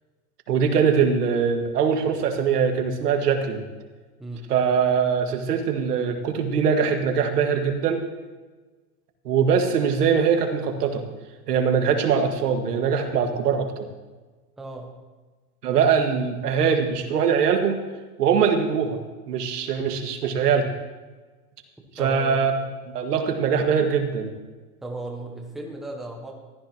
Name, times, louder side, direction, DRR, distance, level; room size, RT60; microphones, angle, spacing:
voice 1, 0.5-3.7 4.5-8.0 9.3-11.0 11.5-13.9 15.6-17.8 18.2-19.0 19.3-20.7 22.0-22.6 22.9-24.3, right 6 dB, 85° right, 5 dB, 1.8 m, -22 dB
voice 2, 14.6-14.9 22.0-22.5 24.8-26.3, right 2 dB, ahead, 1 dB, 0.3 m, -35 dB
14.0 x 13.0 x 3.0 m, 1.3 s
supercardioid pair, 145°, 46 cm